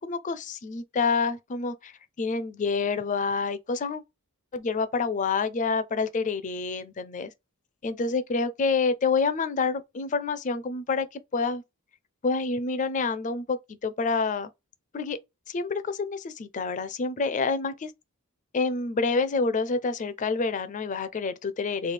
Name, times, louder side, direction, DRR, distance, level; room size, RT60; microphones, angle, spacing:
voice 1, 0.0-4.0 4.5-7.3 7.8-11.6 12.2-14.5 14.9-15.2 15.5-17.9 18.5-21.9, left 4 dB, 35° left, 0.4 m, -28 dB
3.2 x 2.3 x 3.2 m
head